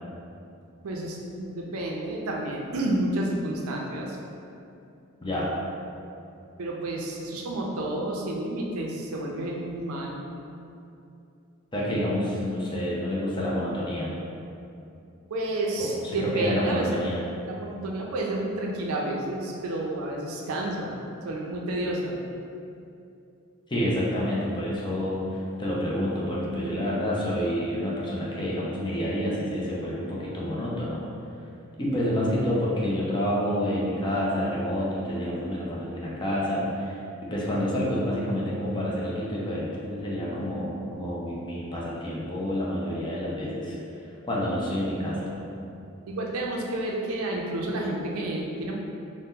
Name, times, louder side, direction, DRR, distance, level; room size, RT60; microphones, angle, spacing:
voice 1, 0.8-4.2 6.6-10.2 15.3-16.9 17.4-21.0 21.2-22.2 26.5-26.8 46.1-48.8, right 1 dB, 80° right, -1 dB, 0.4 m, -30 dB
voice 2, 5.2-5.5 11.7-14.1 15.8-17.2 23.7-25.2 25.6-31.1 31.8-43.8 44.2-45.3, equal, 20° left, -6 dB, 0.5 m, -28 dB
2.8 x 2.1 x 3.6 m, 2.6 s
head